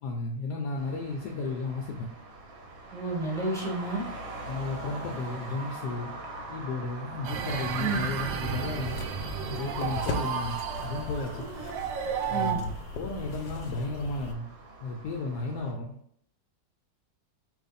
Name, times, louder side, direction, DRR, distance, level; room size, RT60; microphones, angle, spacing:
voice 1, 0.0-2.1 4.5-6.1 6.5-9.0 9.5-11.5 12.3-14.5 14.8-16.0, left 3 dB, 75° left, 1 dB, 1.1 m, -34 dB
Traffic noise roadway noise, 0.8-15.7, right 2 dB, 60° right, 1.1 m, -43 dB
voice 2, 2.9-4.0 7.8-8.0 12.3-12.6, right 2 dB, ahead, -5 dB, 0.9 m, -31 dB
sound 1, 7.2-12.5, right 7 dB, 90° right, 1.3 m, -33 dB
sound 2, 8.8-14.3, left 3 dB, 90° left, 1.3 m, -38 dB
4.7 x 2.5 x 4.0 m, 0.71 s
omnidirectional pair, 2.0 m